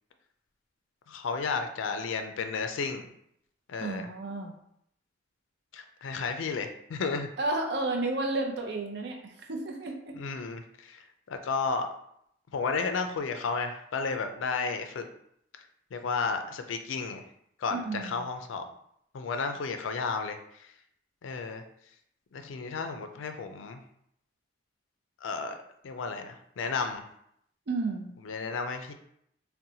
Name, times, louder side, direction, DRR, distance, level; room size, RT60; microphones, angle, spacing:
voice 1, 1.1-3.0 3.7-4.1 5.7-7.3 10.2-11.0 11.3-11.9 12.5-15.1 15.5-15.6 15.9-17.2 17.6-18.6 19.1-20.7 21.2-21.6 22.3-23.8 25.2-25.6 25.8-27.0 28.2-28.9, left 4 dB, 85° left, 7 dB, 0.4 m, -33 dB
voice 2, 3.8-4.5 7.4-10.2 17.7-18.3 27.7-28.2, right 2 dB, 60° right, 2 dB, 0.5 m, -32 dB
4.0 x 2.1 x 2.7 m, 0.72 s
head